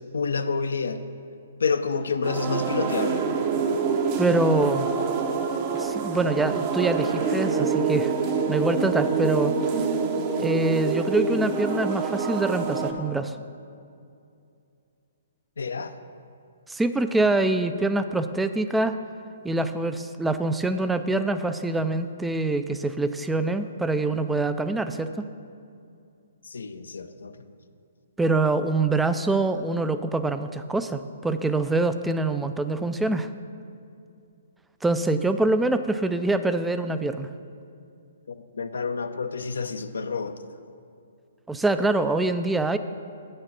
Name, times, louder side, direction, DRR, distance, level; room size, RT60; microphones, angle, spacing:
voice 1, 0.1-1.0 1.6-3.2 15.6-15.9 26.5-27.3 38.3-40.4, left 5 dB, 80° left, 9 dB, 0.5 m, -28 dB
sound 1, 2.2-12.9, right 5 dB, 35° right, 0.8 m, -26 dB
voice 2, 4.2-4.9 5.7-8.1 8.5-9.6 10.4-13.4 16.7-19.0 19.4-25.2 28.2-33.3 34.8-37.3 41.5-42.8, right 2 dB, 5° right, 10 dB, 0.3 m, -25 dB
8.1 x 6.5 x 5.9 m, 2.5 s
hypercardioid pair, 135°, 0 cm